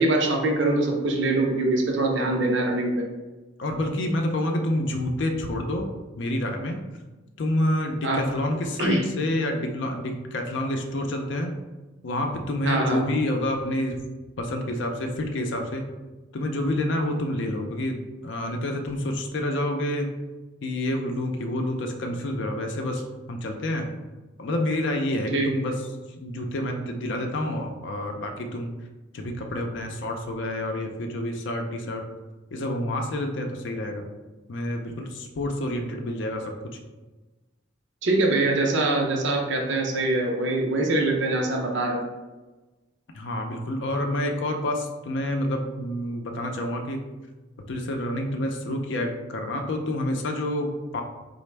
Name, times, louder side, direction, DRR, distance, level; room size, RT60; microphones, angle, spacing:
voice 1, 0.0-3.1 8.0-8.2 8.8-9.0 12.6-13.0 25.3-25.5 38.0-42.0, right 2 dB, 65° right, 1 dB, 0.6 m, -23 dB
voice 2, 3.6-5.9 6.2-6.8 7.4-11.5 12.0-14.0 14.4-15.8 16.3-18.0 18.2-20.1 20.6-23.0 23.3-23.9 24.4-28.7 29.1-32.0 32.5-34.1 34.5-36.8 43.1-47.0 47.7-51.0, left 1 dB, 65° left, 3 dB, 0.4 m, -28 dB
4.0 x 2.0 x 3.3 m, 1.2 s
head